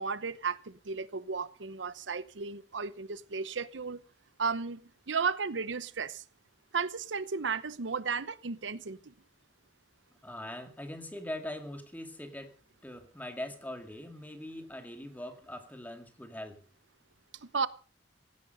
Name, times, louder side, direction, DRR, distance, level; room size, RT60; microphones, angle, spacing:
voice 1, 0.0-4.0 4.4-4.8 5.1-6.2 6.7-9.1 17.4-17.7, right 5 dB, 90° right, 0.9 m, -34 dB
voice 2, 10.2-12.5 12.8-16.6, left 1 dB, 10° left, 2.2 m, -42 dB
16.5 x 15.0 x 5.4 m
head